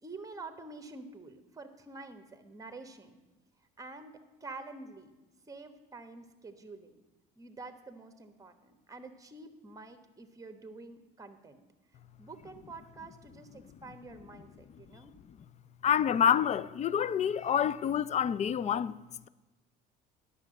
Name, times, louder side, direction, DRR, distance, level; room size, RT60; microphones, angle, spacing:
voice 1, 0.0-3.1 3.8-5.1 5.5-6.9 7.4-11.6 12.2-15.1, right 3 dB, 15° right, 1.2 m, -48 dB
voice 2, 15.8-18.9, left 8 dB, 35° left, 0.4 m, -27 dB
9.6 x 6.2 x 7.6 m
supercardioid pair, 85°, 21 cm